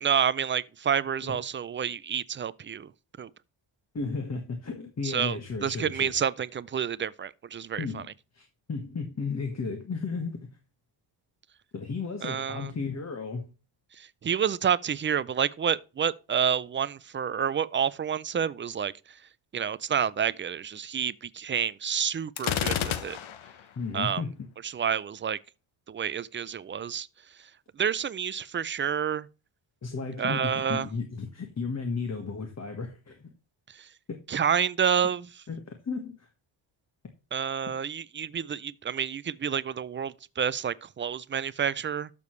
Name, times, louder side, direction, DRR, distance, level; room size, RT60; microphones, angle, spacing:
voice 1, 0.0-2.9 3.2-3.3 5.0-8.0 12.2-12.7 14.0-19.2 19.5-23.2 23.9-24.2 24.6-25.4 25.9-27.1 27.8-29.3 30.2-30.9 33.7-33.9 34.3-35.3 37.3-42.1, right 8 dB, 25° right, 0.3 m, -29 dB
voice 2, 3.9-6.1 7.8-10.5 11.7-13.5 23.8-24.5 29.8-33.3 34.1-34.2 35.5-36.3, left 4 dB, 30° left, 1.5 m, -34 dB
Gunshot gunfire, 22.4-23.6, left 10 dB, 70° left, 1.1 m, -30 dB
12.0 x 6.8 x 3.1 m
cardioid pair, 130°, 49 cm